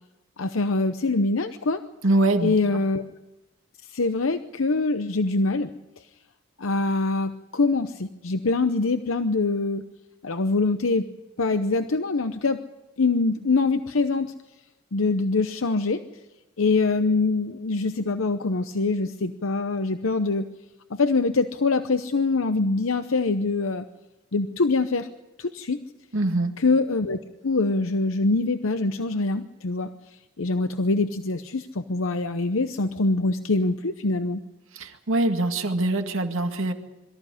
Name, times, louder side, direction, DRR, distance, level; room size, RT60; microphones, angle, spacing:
voice 1, 0.4-1.8 2.4-3.0 3.9-5.7 6.6-9.8 10.2-11.1 11.4-12.6 13.0-14.3 14.9-16.0 16.6-20.5 20.9-23.8 24.3-25.1 25.4-25.8 26.6-27.2 27.4-29.9 30.4-34.4, left 3 dB, 70° left, 9 dB, 0.8 m, -24 dB
voice 2, 2.0-2.5 26.1-26.6 34.7-36.7, right 2 dB, 70° right, 5 dB, 2.1 m, -23 dB
23.0 x 14.0 x 10.0 m, 1.0 s
head